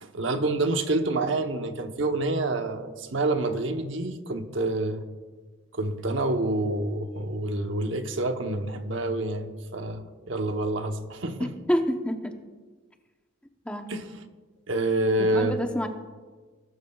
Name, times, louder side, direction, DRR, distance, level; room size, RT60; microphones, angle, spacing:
voice 1, 0.0-5.0 5.7-11.5 13.9-14.1 14.7-15.6, right 2 dB, 70° right, 6 dB, 1.0 m, -27 dB
voice 2, 11.4-12.3 13.7-13.9 15.2-15.9, equal, 5° left, 4 dB, 0.8 m, -28 dB
21.0 x 12.5 x 2.4 m, 1.4 s
head